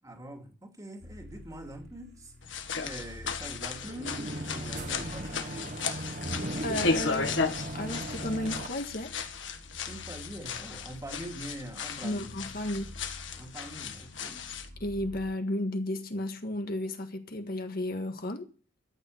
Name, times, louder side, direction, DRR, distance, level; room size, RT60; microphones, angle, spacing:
voice 1, 0.0-5.8 9.9-12.4 13.4-14.5, right 1 dB, 20° right, 2.6 m, -44 dB
sound 1, 1.0-15.3, left 1 dB, 70° right, 4.4 m, -50 dB
sound 2, 2.4-14.7, left 4 dB, 70° left, 1.7 m, -35 dB
sound 3, 3.6-8.7, right 1 dB, 45° right, 1.4 m, -37 dB
voice 2, 6.6-7.4 7.7-9.3 12.0-12.9 14.8-18.5, left 1 dB, 50° left, 1.7 m, -33 dB
13.5 x 9.1 x 8.0 m
head